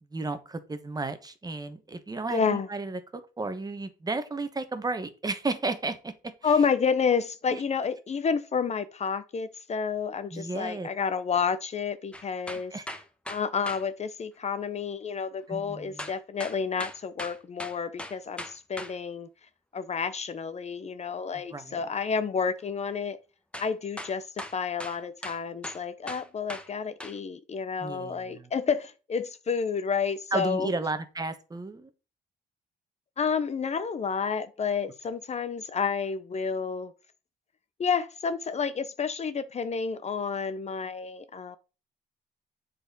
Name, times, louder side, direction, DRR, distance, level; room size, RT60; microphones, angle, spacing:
voice 1, 0.1-6.5 7.5-7.6 10.3-10.9 12.7-12.9 15.5-16.1 21.3-21.8 27.8-28.5 30.3-31.9, right 3 dB, 20° right, 1.2 m, -33 dB
voice 2, 2.3-2.7 6.4-12.7 13.3-19.3 19.7-23.2 23.6-30.7 33.2-36.9 37.8-41.6, left 6 dB, 40° left, 0.7 m, -30 dB
sound 1, 12.1-13.8 16.0-18.9 23.5-23.7 24.0-26.7 27.0-27.2, left 1 dB, 5° left, 1.2 m, -39 dB
7.7 x 4.3 x 5.3 m
cardioid pair, 100°, 17 cm